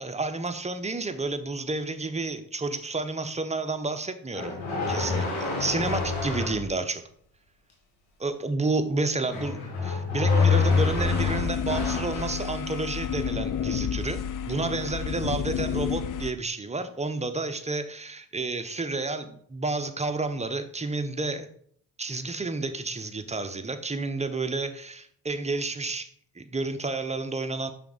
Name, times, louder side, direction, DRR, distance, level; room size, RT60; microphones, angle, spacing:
voice 1, 0.0-4.6 4.9-7.0 8.2-9.6 9.8-14.2 14.4-21.5 22.0-26.1 26.4-27.7, right 3 dB, 15° right, 8 dB, 0.7 m, -30 dB
sound 1, 4.3-6.6 9.3-12.4, left 4 dB, 80° left, 1.9 m, -26 dB
sound 2, 10.7-16.3, left 8 dB, 45° left, 0.5 m, -31 dB
5.7 x 4.3 x 3.9 m, 0.62 s
supercardioid pair, 55°, 48 cm